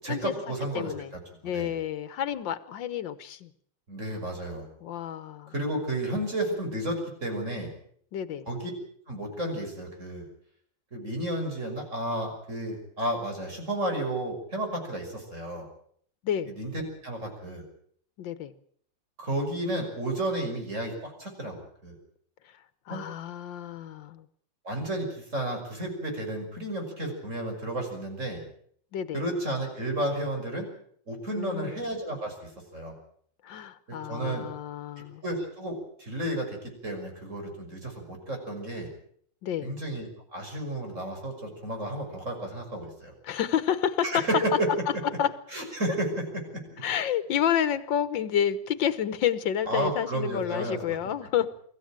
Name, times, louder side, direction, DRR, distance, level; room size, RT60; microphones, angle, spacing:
voice 1, 0.0-1.2 1.5-1.7 3.9-4.7 5.5-7.7 8.5-8.7 9.1-10.3 10.9-15.7 16.4-16.7 17.0-17.6 19.2-22.0 22.9-23.0 24.6-28.4 29.1-30.7 31.1-32.9 33.9-34.5 35.2-38.9 39.6-43.1 44.0-44.7 45.5-46.2 46.5-46.6 49.6-51.0, right 1 dB, 40° right, 2 dB, 6.4 m, -32 dB
voice 2, 0.8-1.1 1.4-3.5 4.8-5.5 8.1-8.5 16.2-16.5 18.2-18.5 22.9-24.3 28.9-29.2 31.3-31.8 33.4-35.2 39.4-39.7 43.2-44.3 45.2-45.3 46.8-51.5, left 9 dB, 85° left, 13 dB, 1.8 m, -29 dB
24.5 x 14.5 x 8.9 m, 0.63 s
omnidirectional pair, 2.0 m